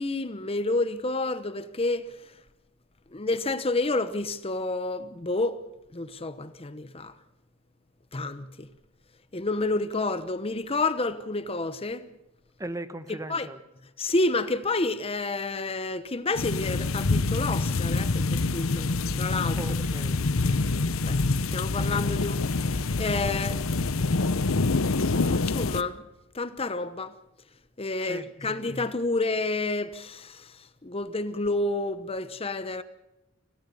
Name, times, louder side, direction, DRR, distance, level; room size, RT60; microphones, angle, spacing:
voice 1, 0.0-2.1 3.1-5.6 5.9-7.1 8.1-8.7 9.3-12.0 13.3-13.5 14.0-19.6 21.0-21.2 21.5-23.6 24.9-26.0 26.3-27.1 27.8-30.6 30.8-32.8, left 2 dB, 30° left, 0.9 m, -29 dB
voice 2, 12.6-13.6 19.6-21.0 28.0-28.7, right 1 dB, 15° right, 1.1 m, -40 dB
sound 1, 16.3-25.8, left 3 dB, 90° left, 0.9 m, -26 dB
28.0 x 17.0 x 7.0 m
head